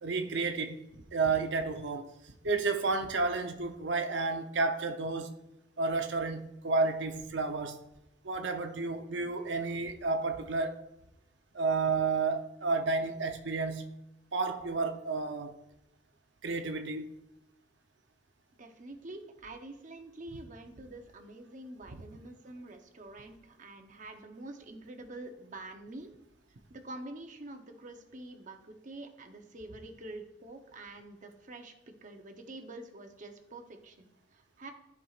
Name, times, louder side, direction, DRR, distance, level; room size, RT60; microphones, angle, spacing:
voice 1, 0.0-0.8 1.1-5.4 5.8-7.8 8.2-10.8 11.5-13.9 14.3-15.6 16.4-17.1 21.9-22.1, right 3 dB, 70° right, 0.7 m, -31 dB
voice 2, 18.6-26.1 26.7-34.7, right 2 dB, 45° right, 0.8 m, -47 dB
13.5 x 4.6 x 2.4 m
head